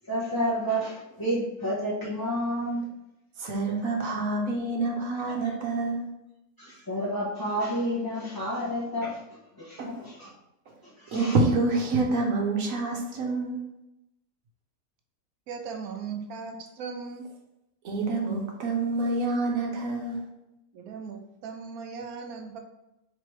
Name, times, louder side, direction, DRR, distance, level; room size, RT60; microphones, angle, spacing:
voice 1, 0.1-2.9 6.6-9.2 9.6-10.3 10.8-11.4, equal, 25° left, -8 dB, 0.5 m, -30 dB
voice 2, 3.4-6.1 9.8-10.1 10.7-10.8 11.1-13.6 17.8-20.2, right 3 dB, 70° right, 1 dB, 1.2 m, -27 dB
voice 3, 15.5-17.2 20.7-22.6, right 5 dB, 85° right, 5 dB, 1.1 m, -38 dB
4.6 x 3.3 x 3.1 m, 0.89 s
omnidirectional pair, 1.5 m